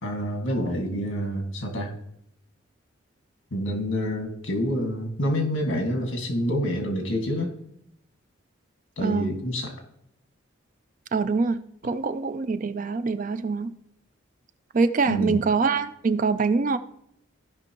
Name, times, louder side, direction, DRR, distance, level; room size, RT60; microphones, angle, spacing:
voice 1, 0.0-1.9 3.5-7.5 9.0-9.7 15.1-15.5, equal, 80° left, 3 dB, 1.9 m, -27 dB
voice 2, 11.1-13.7 14.7-16.8, right 4 dB, 40° right, 11 dB, 0.4 m, -24 dB
15.0 x 5.3 x 3.0 m, 0.73 s
head